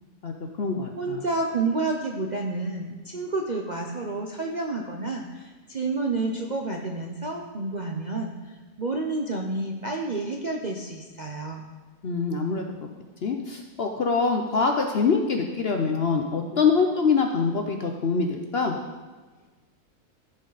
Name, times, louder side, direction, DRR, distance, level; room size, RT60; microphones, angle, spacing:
voice 1, 0.2-1.2 12.0-12.6 13.2-18.8, left 5 dB, 55° left, 3 dB, 0.7 m, -24 dB
voice 2, 1.0-8.3 8.8-11.7, right 3 dB, 45° right, 1 dB, 0.6 m, -29 dB
14.5 x 5.4 x 4.0 m, 1.3 s
omnidirectional pair, 1.7 m